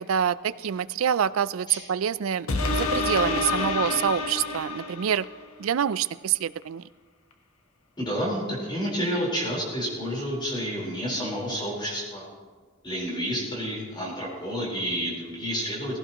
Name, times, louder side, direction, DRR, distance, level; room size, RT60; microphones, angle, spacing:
voice 1, 0.0-5.3 5.6-6.9, right 8 dB, 75° right, 18 dB, 0.4 m, -26 dB
sound 1, 2.5-5.4 5.9-6.0, left 3 dB, 85° left, 1.2 m, -27 dB
voice 2, 8.0-12.3 12.8-16.0, equal, 25° left, -4 dB, 4.2 m, -30 dB
17.5 x 16.0 x 3.0 m, 1.4 s
head